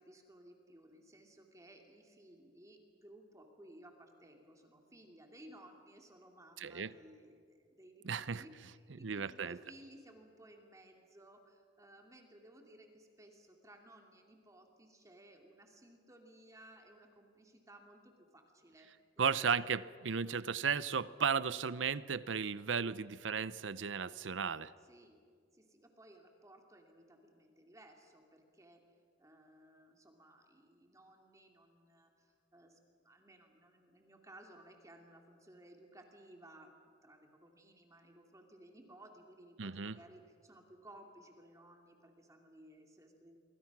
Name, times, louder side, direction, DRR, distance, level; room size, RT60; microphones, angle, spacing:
voice 1, 0.0-18.9 19.2-19.3 24.8-25.2 25.5-28.8 29.2-36.7 37.0-43.4, right 1 dB, 20° right, 3 dB, 2.5 m, -59 dB
voice 2, 6.6-6.9 8.0-8.4 9.0-9.6 19.2-24.7 39.6-40.0, right 6 dB, 90° right, 17 dB, 0.7 m, -35 dB
27.0 x 23.5 x 6.1 m, 2.1 s
head